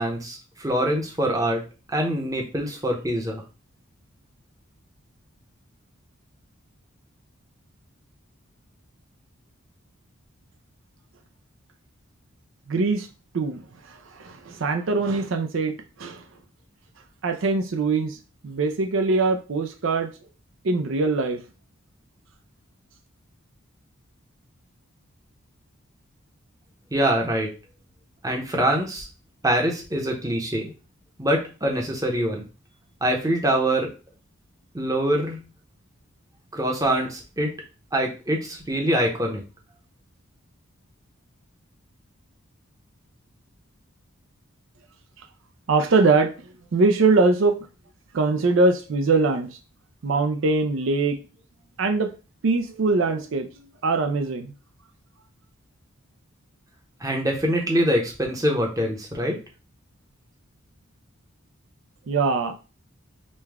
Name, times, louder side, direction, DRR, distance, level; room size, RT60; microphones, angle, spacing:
voice 1, 0.0-1.6 1.9-3.4 26.9-27.5 28.2-29.1 29.4-30.7 31.2-32.4 33.0-33.9 34.7-35.4 36.5-37.5 37.9-39.4 57.0-59.4, right 1 dB, 15° right, 1 dB, 0.8 m, -24 dB
voice 2, 12.7-13.1 13.3-13.6 13.8-15.7 16.0-16.2 17.2-18.2 18.4-20.1 20.6-21.4 45.2-45.3 45.7-46.3 46.7-47.6 48.1-49.6 50.0-51.2 51.8-52.1 52.4-53.5 53.8-54.5 62.1-62.5, right 3 dB, 65° right, 6 dB, 0.4 m, -22 dB
5.2 x 2.2 x 3.4 m, 0.33 s
head